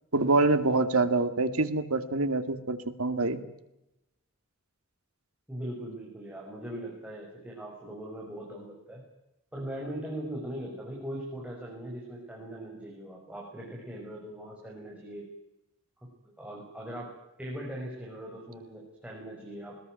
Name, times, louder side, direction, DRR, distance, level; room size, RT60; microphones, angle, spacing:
voice 1, 0.1-3.4, right 3 dB, 85° right, 9 dB, 2.4 m, -26 dB
voice 2, 5.5-9.0 9.5-15.3 16.2-17.1 17.4-19.8, right 1 dB, 5° right, -3 dB, 6.0 m, -40 dB
22.5 x 20.5 x 9.2 m, 0.89 s
head